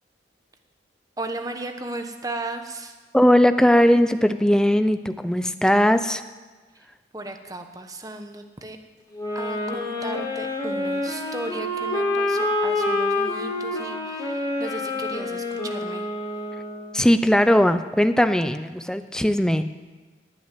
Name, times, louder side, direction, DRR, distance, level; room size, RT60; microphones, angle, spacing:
voice 1, 1.2-2.9 7.1-8.8 9.3-16.1, right 2 dB, 20° right, 6 dB, 1.1 m, -35 dB
voice 2, 3.1-6.2 16.9-19.6, equal, 5° left, 10 dB, 0.6 m, -19 dB
sound 1, 9.1-17.0, left 2 dB, 20° left, 3.5 m, -27 dB
19.0 x 6.3 x 9.2 m, 1.4 s
head